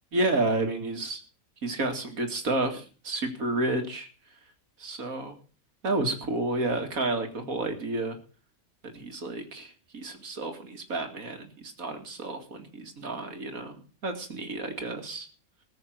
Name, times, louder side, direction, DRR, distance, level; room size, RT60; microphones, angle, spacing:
voice 1, 0.1-1.2 1.6-4.1 4.8-5.3 5.8-8.2 8.9-15.3, right 2 dB, 80° right, 5 dB, 2.8 m, -30 dB
19.5 x 6.7 x 7.7 m, 0.38 s
omnidirectional pair, 1.5 m